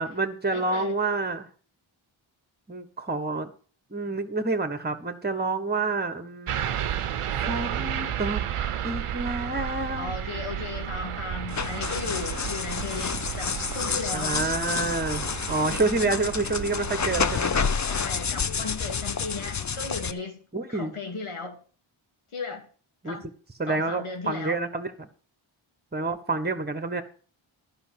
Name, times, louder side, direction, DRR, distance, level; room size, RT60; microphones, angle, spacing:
voice 1, 0.0-1.5 2.7-3.5 3.9-6.7 7.4-8.4 8.8-10.1 14.1-17.6 20.5-20.9 23.0-23.2 23.6-25.1 25.9-27.0, right 3 dB, 20° right, 10 dB, 1.4 m, -28 dB
voice 2, 0.5-1.0 9.9-14.4 17.8-20.4 20.7-21.6 22.3-22.7 23.0-23.2 23.7-24.6, left 4 dB, 80° left, 2 dB, 2.6 m, -36 dB
sound 1, 6.5-17.4, right 10 dB, 90° right, 0.8 m, -32 dB
sound 2, 11.5-20.1, left 6 dB, 35° left, 0.7 m, -29 dB
11.0 x 5.6 x 7.6 m, 0.42 s
cardioid pair, 50°, 49 cm